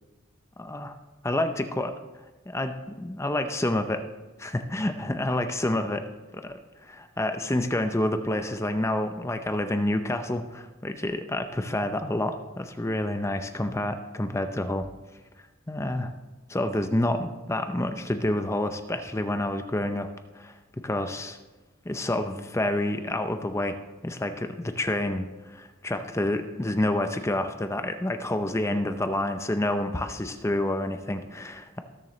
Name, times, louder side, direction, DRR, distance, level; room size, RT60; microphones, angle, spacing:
voice 1, 0.6-0.9 1.2-1.9 2.5-4.0 4.4-6.0 6.3-14.9 15.7-16.1 16.5-20.1 20.3-20.6 20.8-21.3 21.9-23.8 24.0-31.8, left 1 dB, 15° left, 7 dB, 0.6 m, -28 dB
19.0 x 6.8 x 3.2 m, 1.2 s
head